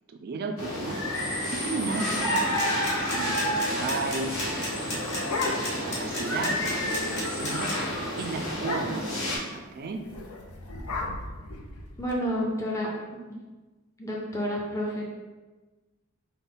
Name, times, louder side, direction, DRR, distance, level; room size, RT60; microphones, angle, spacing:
voice 1, 0.1-1.0 1.5-4.3 4.8-5.0 5.5-7.7 8.2-10.0, right 3 dB, 45° right, 6 dB, 0.3 m, -34 dB
sound 1, 0.6-9.4, equal, 70° left, 1.3 m, -30 dB
sound 2, 2.3-7.7, left 2 dB, 55° left, 1.1 m, -34 dB
sound 3, 4.8-6.0 6.3-6.4 6.7-7.0 7.4-7.6 7.9-8.0 8.5-9.2 10.1-12.1, left 3 dB, 90° left, 0.6 m, -35 dB
voice 2, 12.0-12.9 14.0-15.0, equal, 15° left, -4 dB, 0.5 m, -29 dB
5.4 x 2.1 x 3.8 m, 1.2 s
head